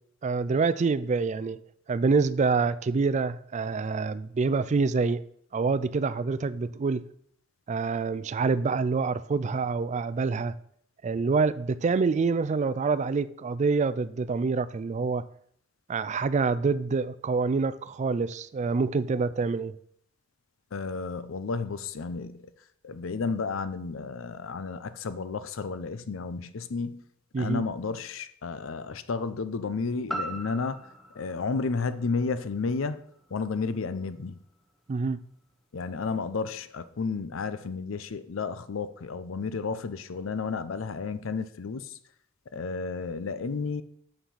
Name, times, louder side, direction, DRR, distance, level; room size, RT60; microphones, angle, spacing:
voice 1, 0.2-1.6 1.9-5.2 5.5-7.0 7.7-10.5 11.0-15.2 15.9-19.8 27.3-27.6 34.9-35.2, right 4 dB, 35° right, 0.3 m, -26 dB
voice 2, 20.7-22.5 22.8-27.0 27.4-30.8 31.1-33.0 33.3-34.4 35.7-42.0 42.5-43.8, left 4 dB, 70° left, 0.5 m, -32 dB
sound 1, 30.1-34.2 34.6-34.7, right 1 dB, ahead, 0.7 m, -40 dB
6.7 x 5.8 x 5.6 m
head